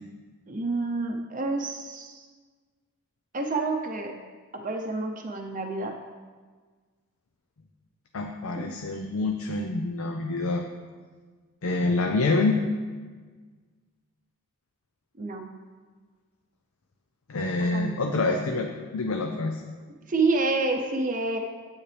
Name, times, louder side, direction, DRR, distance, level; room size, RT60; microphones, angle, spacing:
voice 1, 0.5-2.3 3.3-4.1 4.5-5.9 8.6-8.8 15.2-15.5 17.7-17.9 20.1-21.4, right 3 dB, 35° right, 2 dB, 0.7 m, -28 dB
voice 2, 8.1-10.6 11.6-12.6 17.3-19.6, left 3 dB, 75° left, 3 dB, 0.6 m, -26 dB
9.5 x 8.6 x 3.4 m, 1.5 s
head